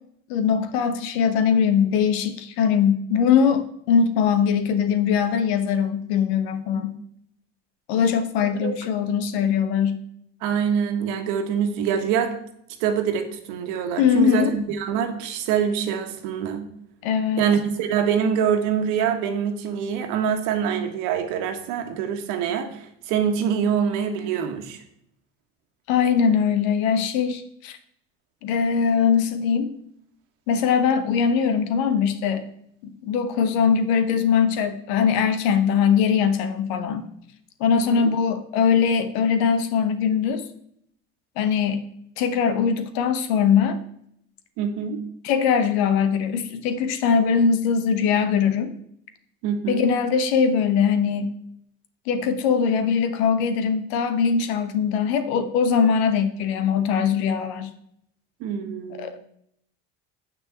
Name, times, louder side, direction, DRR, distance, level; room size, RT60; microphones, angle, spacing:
voice 1, 0.3-7.0 7.9-10.0 14.0-14.6 17.0-17.5 25.9-27.8 28.4-29.7 30.5-32.5 32.8-37.0 37.6-40.4 41.4-41.8 42.2-43.8 45.2-48.7 49.7-51.3 52.1-57.7 59.0-59.2, left 7 dB, 85° left, 10 dB, 1.2 m, -21 dB
voice 2, 10.4-12.3 12.8-16.7 17.4-24.8 37.7-38.1 44.6-45.0 49.4-49.9 58.4-59.1, right 7 dB, 80° right, 6 dB, 1.6 m, -25 dB
7.5 x 6.2 x 7.3 m, 0.71 s
supercardioid pair, 90°, 31 cm